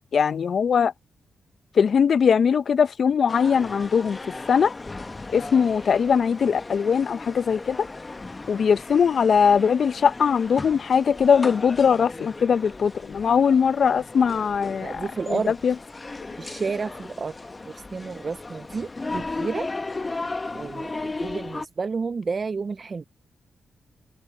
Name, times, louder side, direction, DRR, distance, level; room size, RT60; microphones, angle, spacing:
voice 1, 0.1-0.9 1.7-4.2 4.5-4.7 5.3-7.9 8.5-15.7, left 6 dB, 65° left, 1.1 m, -21 dB
sound 1, 3.3-21.7, left 3 dB, 35° left, 1.4 m, -36 dB
voice 2, 14.8-15.5 16.4-17.3 17.7-19.7 20.5-23.0, right 4 dB, 50° right, 1.0 m, -31 dB
open air
hypercardioid pair, 40°, 0 cm